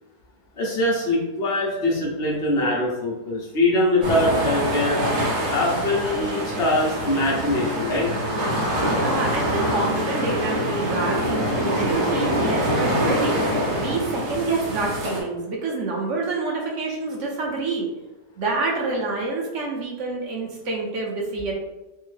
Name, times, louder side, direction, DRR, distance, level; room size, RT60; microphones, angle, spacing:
voice 1, 0.6-5.0 5.5-8.2, left 1 dB, 90° left, -3 dB, 0.5 m, -23 dB
sound 1, 4.0-15.2, equal, 75° right, 1.4 m, -24 dB
voice 2, 8.8-13.4 13.7-17.9 18.4-21.5, right 3 dB, 60° right, -1 dB, 0.8 m, -27 dB
3.4 x 2.0 x 3.1 m, 1.0 s
omnidirectional pair, 1.8 m